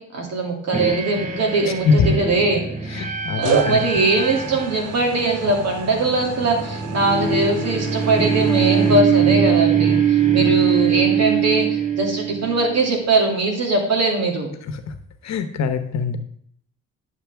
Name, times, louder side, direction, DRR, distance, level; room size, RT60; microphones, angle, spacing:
voice 1, 0.0-2.6 2.9-3.0 3.4-14.5, right 2 dB, 60° right, 1 dB, 2.6 m, -21 dB
sound 1, 0.7-12.8, right 7 dB, 25° right, 1.2 m, -22 dB
sound 2, 1.5-2.1 3.4-8.9, right 6 dB, 80° right, 0.9 m, -30 dB
voice 2, 2.9-3.8 10.4-10.5 15.2-16.2, left 5 dB, 65° left, 8 dB, 1.0 m, -21 dB
10.5 x 6.6 x 3.5 m, 0.68 s
cardioid pair, 90°, 30 cm